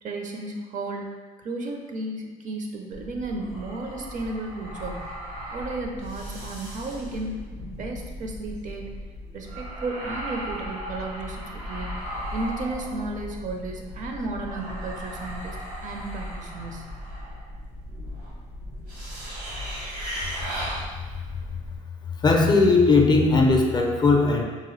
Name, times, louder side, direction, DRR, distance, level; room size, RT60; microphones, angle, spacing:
voice 1, 0.0-1.1 1.4-5.1 5.5-8.8 9.3-11.9 12.3-15.6 15.8-16.8, right 2 dB, 50° right, 2 dB, 0.5 m, -33 dB
sound 1, 2.9-21.8, equal, 85° right, 1.4 m, -36 dB
voice 2, 22.2-24.4, left 3 dB, 25° left, 2 dB, 0.4 m, -18 dB
2.9 x 2.3 x 3.1 m, 1.4 s
supercardioid pair, 75°, 17 cm